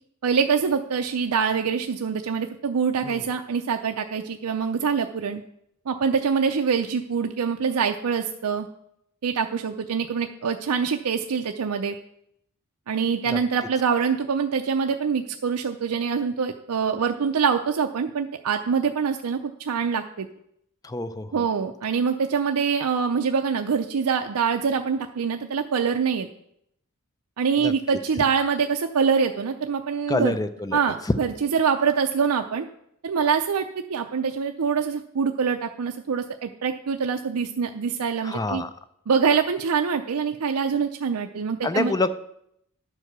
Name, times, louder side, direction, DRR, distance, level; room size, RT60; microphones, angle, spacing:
voice 1, 0.2-5.4 5.9-8.7 9.2-12.0 12.9-20.3 21.3-26.3 27.4-30.4 30.7-32.7 33.0-33.6 33.9-38.6 39.1-41.9, right 6 dB, 90° right, 5 dB, 0.5 m, -24 dB
voice 2, 20.8-21.4 27.6-27.7 30.1-30.8 38.2-38.7 41.6-42.1, left 2 dB, 15° left, 12 dB, 0.5 m, -27 dB
10.5 x 4.7 x 6.6 m, 0.75 s
head